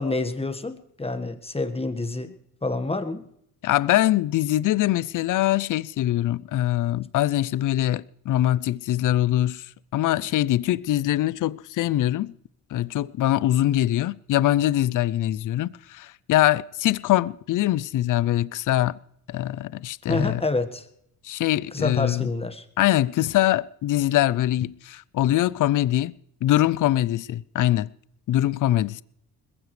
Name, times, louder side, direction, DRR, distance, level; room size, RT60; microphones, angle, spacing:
voice 1, 0.0-2.3 2.6-3.2 20.1-20.8 21.7-22.6, left 2 dB, 15° left, 1.6 m, -27 dB
voice 2, 3.6-9.7 9.9-12.3 12.7-19.0 19.3-20.4 21.2-22.3 22.8-26.1 26.4-27.9 28.3-29.0, left 14 dB, 55° left, 0.5 m, -23 dB
21.0 x 15.5 x 3.3 m
supercardioid pair, 75°, 38 cm